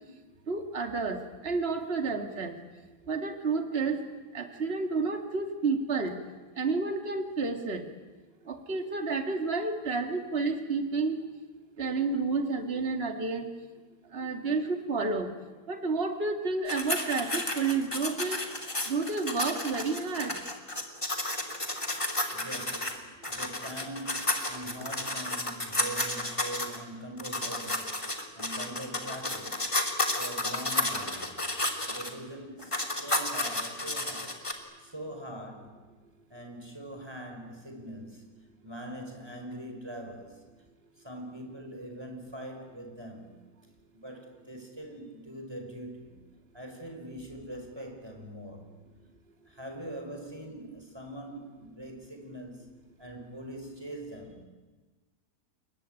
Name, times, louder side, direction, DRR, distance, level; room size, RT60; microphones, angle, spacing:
voice 1, 0.5-2.5 3.1-4.0 4.3-6.2 6.6-7.8 8.5-11.2 11.8-13.5 14.1-15.3 15.7-18.4 18.9-20.4, right 4 dB, 40° right, 5 dB, 2.3 m, -30 dB
sound 1, 16.7-23.0 23.2-26.8 27.2-32.1 32.6-34.5, left 2 dB, 20° left, 2.8 m, -32 dB
voice 2, 22.3-29.6 30.2-31.4 31.9-34.4 34.8-35.9 36.3-40.5 41.0-43.4 43.9-46.2 46.5-48.7 49.5-52.7 53.0-54.5, right 1 dB, 15° right, 3 dB, 5.4 m, -43 dB
29.5 x 22.5 x 9.1 m, 1.3 s
omnidirectional pair, 1.7 m